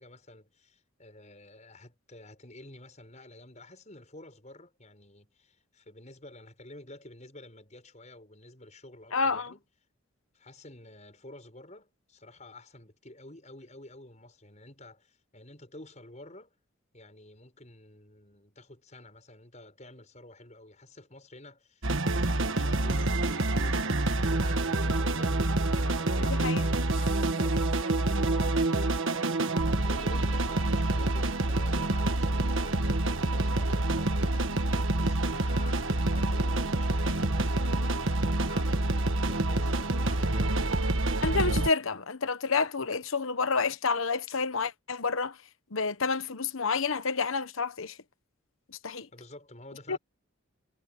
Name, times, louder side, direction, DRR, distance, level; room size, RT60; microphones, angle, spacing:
voice 1, 0.0-9.7 10.3-16.5 16.9-25.4 25.8-40.9 49.1-50.0, left 2 dB, 35° left, 6.6 m, -50 dB
voice 2, 9.1-9.5 26.2-26.6 41.2-45.3 45.7-48.0 48.8-49.1 49.9-50.0, left 4 dB, 70° left, 1.1 m, -29 dB
sound 1, 21.8-41.7, right 2 dB, 65° right, 1.5 m, -27 dB
head